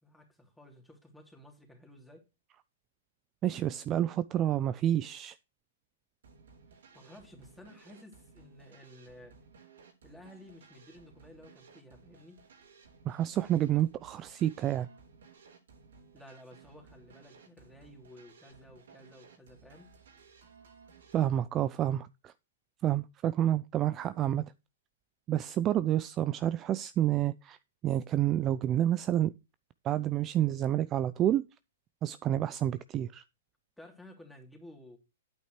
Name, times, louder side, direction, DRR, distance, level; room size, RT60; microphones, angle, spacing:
voice 1, 0.0-2.2 6.9-9.4 10.0-12.4 16.1-19.9 33.8-35.0, left 1 dB, ahead, 2.9 m, -54 dB
voice 2, 3.4-5.4 13.1-14.9 21.1-22.3 22.8-24.5 25.3-27.6 27.8-29.3 29.8-31.4 32.0-33.2, right 12 dB, 25° right, 0.4 m, -29 dB
sound 1, 6.2-21.4, right 5 dB, 70° right, 3.4 m, -58 dB
9.1 x 8.5 x 3.1 m
hypercardioid pair, 125°, 0 cm